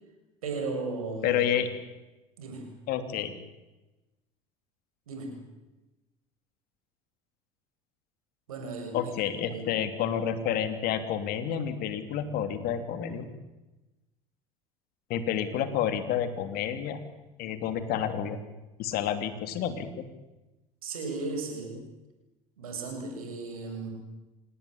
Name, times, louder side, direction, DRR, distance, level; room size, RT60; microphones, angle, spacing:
voice 1, 0.4-1.4 2.4-2.7 5.1-5.3 8.5-9.1 9.5-9.8 20.8-21.8 22.6-23.9, right 3 dB, 80° right, 3 dB, 7.1 m, -35 dB
voice 2, 1.2-1.7 2.9-3.3 8.9-13.3 15.1-17.0 17.4-18.4 18.8-20.1, left 9 dB, 55° left, 10 dB, 3.1 m, -29 dB
27.5 x 18.5 x 8.9 m, 1.1 s
hypercardioid pair, 65°, 18 cm